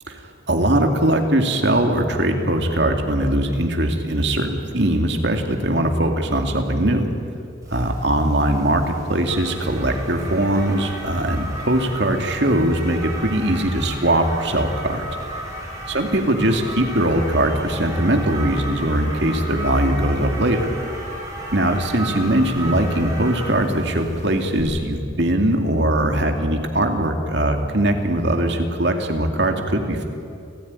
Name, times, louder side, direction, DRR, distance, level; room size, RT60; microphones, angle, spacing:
voice 1, 0.1-7.1 7.7-15.1 15.9-20.7 21.5-30.0, right 1 dB, 60° right, 4 dB, 2.6 m, -21 dB
sound 1, 7.6-24.6, right 1 dB, 15° right, 6.4 m, -34 dB
29.5 x 15.0 x 9.7 m, 2.5 s
head